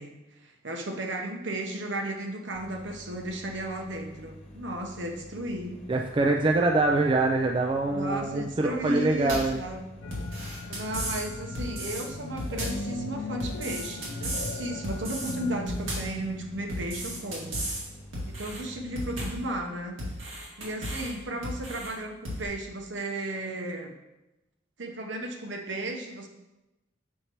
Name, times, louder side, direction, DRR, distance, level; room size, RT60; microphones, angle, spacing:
voice 1, 0.0-5.7 7.9-9.8 10.7-17.6 18.4-20.0 20.6-23.9 24.8-26.3, right 1 dB, 60° right, 3 dB, 0.9 m, -34 dB
sound 1, 2.5-19.1, equal, 30° left, 0.8 m, -48 dB
voice 2, 5.9-9.6, right 2 dB, 25° right, 1 dB, 0.3 m, -24 dB
sound 2, 9.3-9.6 10.1-11.2 11.5-12.0 12.4-12.9 13.4-14.5 14.8-15.3 15.7-16.2 16.7-17.8 18.1-18.6 19.0-19.5 20.0-21.1 21.4-21.9 22.2-22.4, equal, 85° right, 2.0 m, -34 dB
sound 3, 10.0-17.3, left 2 dB, 75° left, 0.5 m, -39 dB
6.5 x 5.5 x 2.9 m, 0.97 s
head